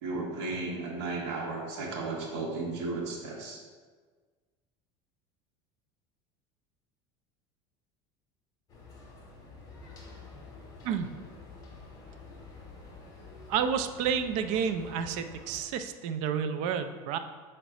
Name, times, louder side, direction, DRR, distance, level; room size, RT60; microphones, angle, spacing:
voice 1, 0.0-3.6, right 3 dB, 85° right, -2 dB, 1.6 m, -34 dB
sound 1, 8.7-15.6, left 3 dB, 25° left, 1.4 m, -48 dB
voice 2, 13.5-17.2, right 7 dB, 55° right, 9 dB, 0.5 m, -30 dB
6.3 x 4.3 x 4.0 m, 1.5 s
cardioid pair, 150°, 15 cm